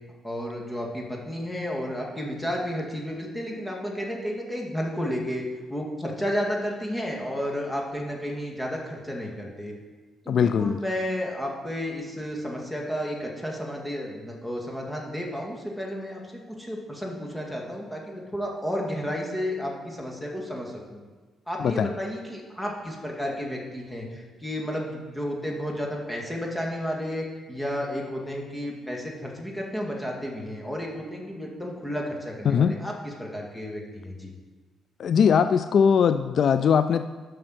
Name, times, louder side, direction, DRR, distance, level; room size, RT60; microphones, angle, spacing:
voice 1, 0.2-5.4 5.7-9.7 10.2-21.0 21.5-34.3, equal, 10° left, -1 dB, 2.0 m, -32 dB
voice 2, 10.3-10.8 21.6-21.9 32.5-32.7 35.0-37.1, left 7 dB, 60° left, 11 dB, 0.3 m, -20 dB
7.7 x 6.1 x 6.3 m, 1.3 s
cardioid pair, 90°, 0 cm